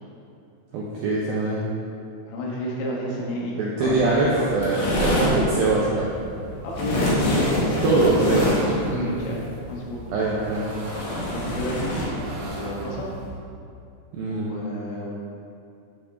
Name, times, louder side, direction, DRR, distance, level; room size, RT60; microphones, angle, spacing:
voice 1, 0.7-1.6 3.6-6.1 7.8-8.4 8.9-9.1 10.1-10.7 14.1-14.5, right 3 dB, 80° right, -5 dB, 2.1 m, -23 dB
voice 2, 2.3-4.5 6.6-8.8 9.0-9.4 9.7-10.0 11.3-13.1 14.3-15.1, equal, 80° left, -3 dB, 3.7 m, -31 dB
sound 1, 3.8-13.3, left 1 dB, 55° left, 2.2 m, -26 dB
sound 2, 7.7-9.6 10.1-11.8 12.1-13.1, right 1 dB, 65° right, 2.1 m, -39 dB
9.4 x 7.3 x 3.6 m, 2.5 s
omnidirectional pair, 5.2 m